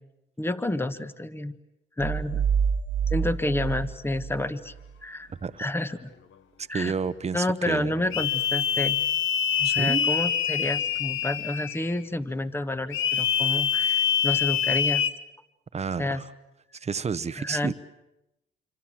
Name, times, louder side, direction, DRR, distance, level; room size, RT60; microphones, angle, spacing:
voice 1, 0.4-1.6 2.0-2.4 3.1-4.7 5.0-5.3 5.6-6.1 6.7-6.9 7.3-9.0 9.6-15.1 16.0-16.2 17.4-17.7, left 1 dB, 10° left, 12 dB, 1.4 m, -29 dB
sound 1, 2.0-4.9, right 7 dB, 60° right, 1.2 m, -27 dB
voice 2, 6.6-8.2 9.6-10.1 15.7-16.3 16.7-17.7, right 5 dB, 35° right, 15 dB, 1.0 m, -30 dB
sound 2, 8.1-12.0 12.9-15.1, left 9 dB, 80° left, 1.3 m, -25 dB
26.5 x 25.5 x 7.6 m, 0.93 s
cardioid pair, 90°, 20 cm